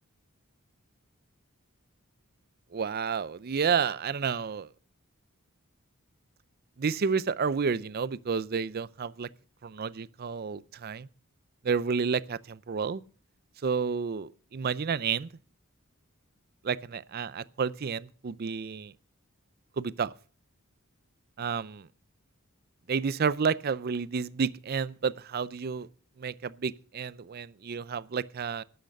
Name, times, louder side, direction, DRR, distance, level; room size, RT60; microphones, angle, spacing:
voice 1, 2.7-4.7 6.8-9.3 9.6-11.1 11.6-13.0 13.6-15.3 16.6-18.9 19.8-20.1 21.4-21.9 22.9-25.9 26.2-28.6, right 6 dB, 45° right, 0.5 m, -30 dB
12.0 x 8.8 x 6.5 m
head